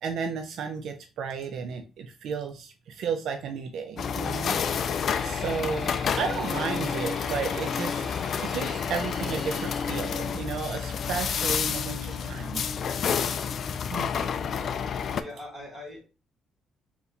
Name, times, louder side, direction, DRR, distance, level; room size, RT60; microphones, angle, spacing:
voice 1, 0.0-4.6 5.2-8.0 8.4-12.6 13.9-14.1, right 6 dB, 60° right, 5 dB, 0.4 m, -33 dB
sound 1, 4.0-15.2, left 7 dB, 45° left, 0.4 m, -29 dB
sound 2, 5.1-10.1, right 2 dB, 35° right, 0.9 m, -45 dB
voice 2, 15.1-16.0, left 1 dB, 15° right, -2 dB, 2.4 m, -42 dB
4.0 x 2.9 x 4.0 m, 0.34 s
cardioid pair, 150°, 0 cm